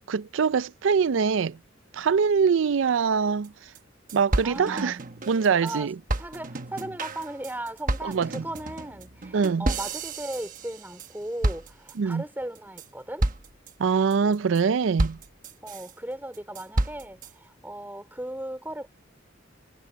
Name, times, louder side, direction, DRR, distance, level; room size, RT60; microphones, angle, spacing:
voice 1, 0.1-1.6 1.9-3.5 4.1-5.0 5.3-6.0 8.0-8.4 9.3-9.7 12.0-12.2 13.8-15.2, right 6 dB, 75° right, 0.4 m, -23 dB
sound 1, 3.4-3.5 3.7-3.8 4.1-5.7 6.1-11.1 11.4-12.1 12.5-12.9 13.2-13.7 14.1-14.6 15.0-15.9 16.3-17.3, right 1 dB, 45° right, 1.1 m, -30 dB
voice 2, 4.4-5.0 5.6-13.3 15.6-18.9, right 1 dB, 10° right, 4.2 m, -37 dB
head